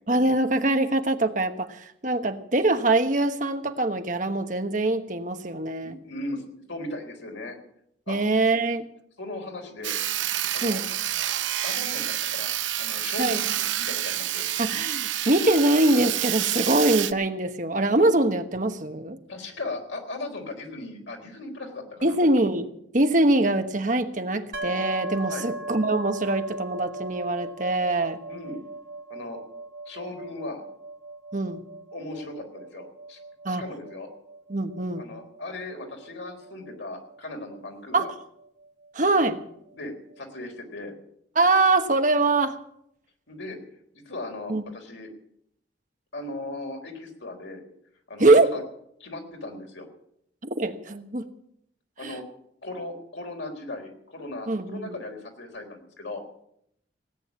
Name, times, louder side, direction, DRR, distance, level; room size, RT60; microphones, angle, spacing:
voice 1, 0.1-5.9 8.1-8.9 10.6-10.8 13.2-13.4 14.6-19.2 22.0-22.7 22.9-28.2 31.3-31.6 33.4-33.6 34.5-35.0 37.9-38.1 38.9-39.4 41.3-42.6 44.5-44.6 48.2-48.5 50.6-51.3 52.0-52.2 54.5-55.0, right 2 dB, 45° right, 7 dB, 1.2 m, -23 dB
voice 2, 5.8-7.6 8.1-8.2 9.2-10.0 10.5-10.8 11.6-12.5 12.8-14.5 19.3-22.2 25.3-25.5 28.3-28.6 29.1-29.4 29.9-30.6 31.9-33.2 33.5-34.1 35.0-38.1 39.7-40.9 43.3-43.6 43.9-45.1 46.1-47.6 48.1-48.6 49.0-49.9 52.0-52.2 52.6-56.2, left 2 dB, 85° left, 3 dB, 3.9 m, -37 dB
Sawing, 9.8-17.1, right 12 dB, 90° right, 0.7 m, -28 dB
sound 1, 24.5-38.2, right 2 dB, 60° right, 2.6 m, -39 dB
17.5 x 9.2 x 8.4 m, 0.73 s
head